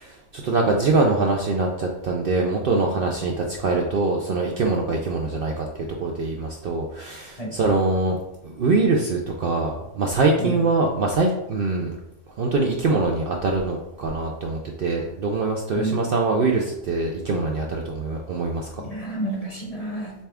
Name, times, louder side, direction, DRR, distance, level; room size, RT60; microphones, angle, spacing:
voice 1, 0.0-8.1 8.4-11.9 12.4-18.7, right 3 dB, 60° right, 1 dB, 0.6 m, -23 dB
voice 2, 18.8-20.1, right 1 dB, 35° left, -2 dB, 0.9 m, -29 dB
6.6 x 2.3 x 3.4 m, 0.87 s
omnidirectional pair, 1.3 m